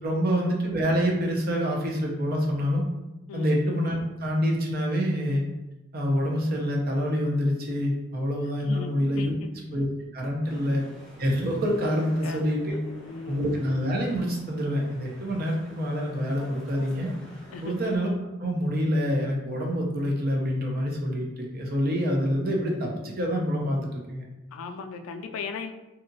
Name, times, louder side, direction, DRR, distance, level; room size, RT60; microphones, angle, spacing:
voice 1, 0.0-2.8 3.3-5.4 5.9-9.3 9.7-9.9 10.1-10.8 11.2-12.8 13.3-17.1 17.6-18.1 18.4-24.2, equal, 50° right, -1 dB, 0.6 m, -26 dB
voice 2, 8.7-9.5 10.4-10.6 12.2-12.5 12.8-13.4 17.5-17.8 24.5-25.7, left 4 dB, 80° left, 5 dB, 0.3 m, -37 dB
sound 1, 10.5-18.0, equal, 5° left, 0.5 m, -48 dB
2.7 x 2.3 x 2.6 m, 0.99 s
head